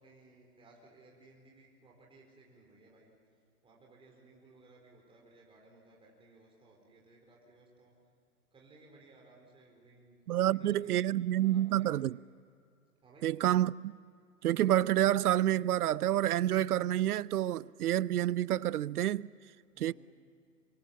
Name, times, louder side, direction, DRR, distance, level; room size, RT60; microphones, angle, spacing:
voice 1, 0.0-3.1 3.6-8.0 8.5-12.0 13.0-13.3 19.7-19.9, right 2 dB, 10° right, 4.4 m, -60 dB
voice 2, 10.3-12.2 13.2-14.0 14.4-19.3 19.8-19.9, right 12 dB, 70° right, 0.6 m, -28 dB
25.5 x 22.5 x 7.3 m
hypercardioid pair, 130°, 47 cm